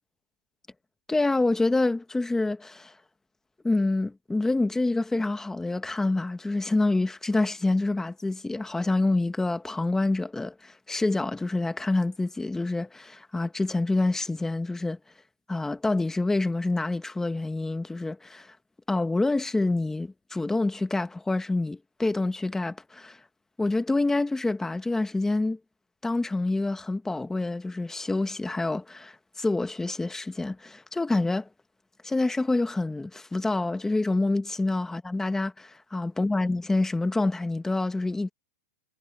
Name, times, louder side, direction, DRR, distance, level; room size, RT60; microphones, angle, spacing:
voice 1, 1.1-2.9 3.6-15.0 15.5-18.5 18.9-23.2 23.6-25.6 26.0-31.5 32.0-38.3, left 2 dB, 5° left, 1.3 m, -27 dB
supercardioid pair, 150°, 8 cm